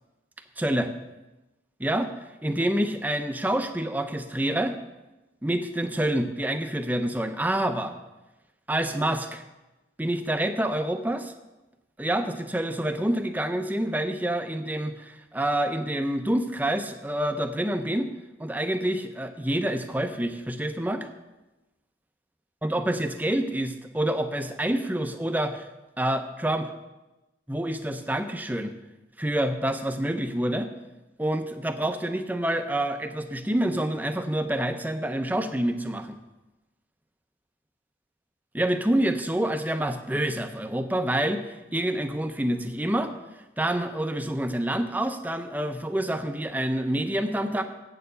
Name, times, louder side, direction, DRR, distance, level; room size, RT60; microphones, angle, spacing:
voice 1, 0.6-0.9 1.8-2.1 2.4-4.8 5.4-7.9 8.7-9.4 10.0-11.3 12.0-18.1 18.4-21.1 22.6-25.7 26.0-26.7 27.5-28.7 29.2-30.7 31.2-36.2 38.5-43.1 43.6-47.6, right 1 dB, 10° right, 7 dB, 0.6 m, -27 dB
8.8 x 6.8 x 6.7 m, 1.0 s
head